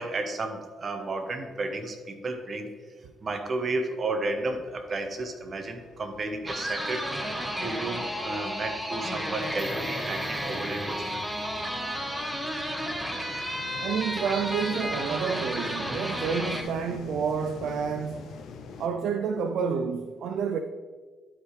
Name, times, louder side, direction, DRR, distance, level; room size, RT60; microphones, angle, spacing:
voice 1, 0.0-2.7 3.2-11.2, right 2 dB, 40° right, 1.0 m, -33 dB
sound 1, 4.3-18.9, left 5 dB, 75° left, 0.7 m, -46 dB
sound 2, 6.5-16.6, equal, 5° right, 1.0 m, -32 dB
sound 3, 9.4-13.6 13.9-14.0, left 1 dB, 15° left, 0.5 m, -48 dB
voice 2, 13.8-18.4 18.8-20.6, right 6 dB, 70° right, 0.4 m, -29 dB
12.0 x 4.9 x 3.2 m
cardioid pair, 90°, 0 cm